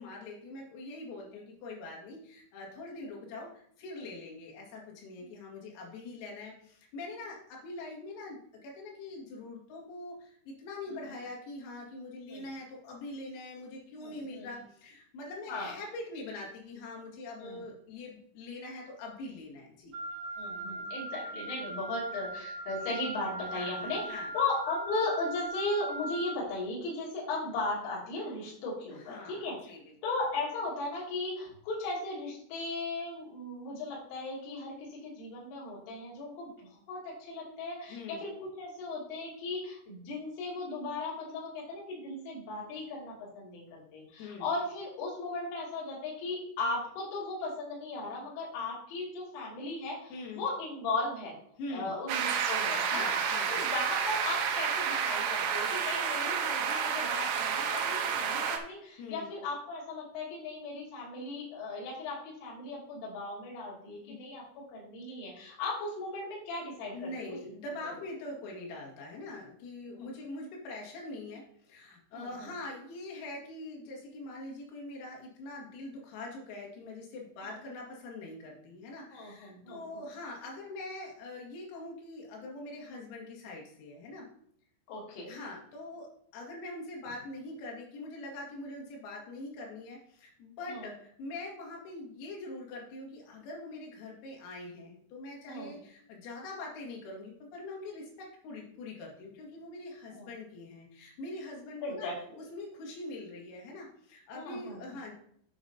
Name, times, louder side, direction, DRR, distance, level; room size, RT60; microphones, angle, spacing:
voice 1, 0.0-19.9 23.5-24.3 29.0-29.9 37.9-38.2 44.2-44.5 50.1-50.4 51.6-51.9 52.9-53.6 59.0-59.3 63.9-64.2 66.9-84.3 85.3-86.1 86.3-102.1 102.4-105.1, left 2 dB, 90° left, -2 dB, 4.7 m, -43 dB
voice 2, 14.0-14.5 15.5-15.7 17.4-17.6 20.4-24.1 24.3-29.7 30.0-51.4 51.7-53.1 53.5-64.4 64.7-67.4 70.0-70.1 72.1-72.5 77.4-77.6 79.1-79.8 84.9-85.3 90.7-90.9 95.5-95.7 100.1-100.3 101.8-102.4 104.3-104.8, left 2 dB, 70° left, -6 dB, 5.1 m, -37 dB
Wind instrument woodwind instrument, 19.9-26.4, right 1 dB, 60° right, 3.1 m, -39 dB
sound 1, 52.1-58.6, right 7 dB, 80° right, 3.1 m, -30 dB
10.0 x 7.2 x 2.8 m, 0.66 s
omnidirectional pair, 5.9 m